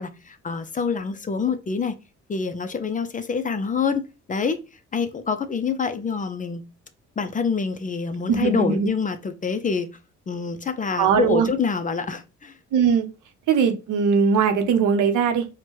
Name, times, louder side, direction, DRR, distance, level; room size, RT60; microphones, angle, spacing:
voice 1, 0.0-1.9 2.3-4.6 4.9-6.6 7.2-9.9 10.3-12.6, left 5 dB, 25° left, 0.4 m, -26 dB
voice 2, 8.3-8.9 11.0-11.5 12.7-13.1 13.5-15.5, right 6 dB, 85° right, 0.7 m, -20 dB
4.4 x 2.2 x 2.9 m
cardioid pair, 90°, 30 cm